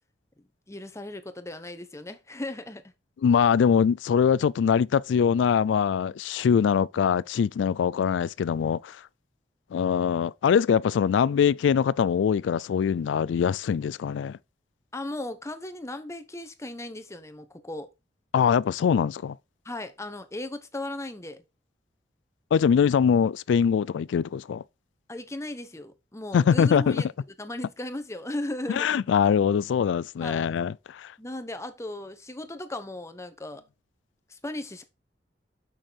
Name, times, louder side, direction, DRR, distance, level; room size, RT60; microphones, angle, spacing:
voice 1, 0.4-2.9 14.9-17.9 19.6-21.4 25.1-27.1 27.4-29.0 30.2-30.5 31.2-33.6 34.3-34.8, left 1 dB, 15° left, 0.9 m, -36 dB
voice 2, 3.2-9.0 9.7-14.4 18.3-19.4 22.5-24.6 26.3-27.0 28.7-31.1, left 7 dB, 80° left, 0.3 m, -23 dB
6.3 x 6.3 x 4.1 m
head